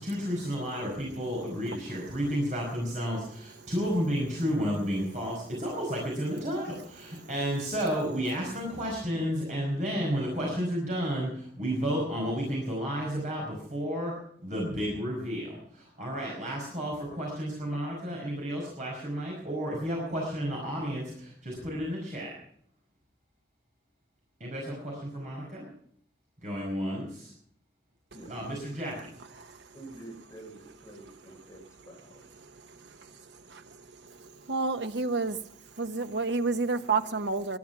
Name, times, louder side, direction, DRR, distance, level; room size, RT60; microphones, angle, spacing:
voice 1, 0.0-14.1 14.4-22.3 24.4-25.7 26.4-27.3 28.3-29.1, equal, 45° right, 5.2 m, -32 dB
voice 2, 29.7-32.4, right 2 dB, 20° left, 5.9 m, -48 dB
voice 3, 34.5-35.4 35.8-37.6, right 3 dB, 85° right, 1.0 m, -28 dB
19.5 x 12.0 x 6.0 m
head